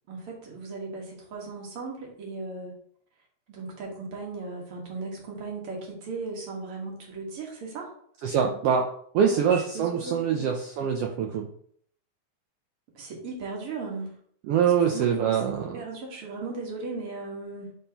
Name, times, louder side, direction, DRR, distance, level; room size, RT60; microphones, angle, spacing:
voice 1, 0.1-2.7 3.5-7.9 9.2-10.5 12.9-14.2 14.9-17.7, right 3 dB, 55° right, -1 dB, 2.2 m, -37 dB
voice 2, 8.2-8.9 9.1-11.5 14.5-15.8, right 7 dB, 85° right, 1 dB, 1.3 m, -24 dB
9.4 x 3.6 x 2.9 m, 0.63 s
omnidirectional pair, 3.4 m